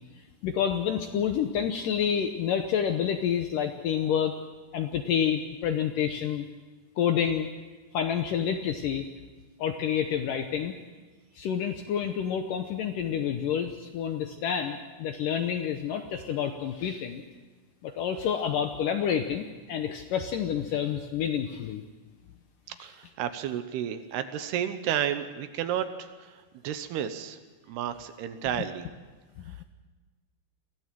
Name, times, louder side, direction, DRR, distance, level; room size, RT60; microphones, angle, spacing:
voice 1, 0.2-4.4 4.7-6.5 7.0-7.5 7.9-9.1 9.6-10.7 11.4-17.2 17.8-21.8 22.8-22.9 29.5-29.6, left 8 dB, 70° left, 6 dB, 2.1 m, -28 dB
voice 2, 22.8-27.4 27.7-28.9, right 10 dB, 75° right, 9 dB, 2.9 m, -32 dB
23.0 x 16.0 x 7.6 m, 1.3 s
omnidirectional pair, 4.9 m